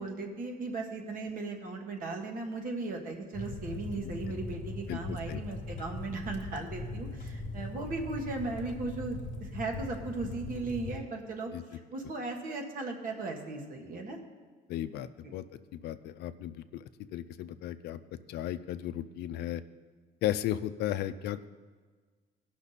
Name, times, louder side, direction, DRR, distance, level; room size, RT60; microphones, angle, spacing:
voice 1, 0.0-11.5 11.9-14.2 15.2-15.3, right 3 dB, 55° right, 2 dB, 1.7 m, -37 dB
sound 1, 3.3-11.0, left 2 dB, 50° left, 1.4 m, -40 dB
voice 2, 4.9-5.4 11.5-11.6 14.7-15.4 15.7-16.8 17.1-18.0 18.3-19.6 20.2-21.5, left 12 dB, 75° left, 12 dB, 0.5 m, -35 dB
16.5 x 6.1 x 4.1 m, 1.5 s
cardioid pair, 110°, 17 cm